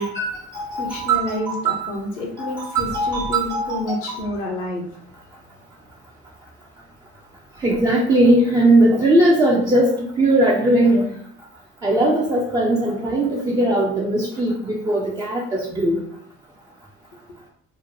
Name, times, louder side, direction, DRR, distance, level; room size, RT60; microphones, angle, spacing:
voice 1, 0.0-1.9 2.4-4.2 7.6-11.1 11.8-16.0, right 1 dB, 10° right, -4 dB, 0.3 m, -19 dB
voice 2, 0.8-4.8, left 1 dB, 80° left, 0 dB, 0.7 m, -28 dB
3.0 x 2.1 x 2.5 m, 0.64 s
figure-of-eight pair, 55°, 38 cm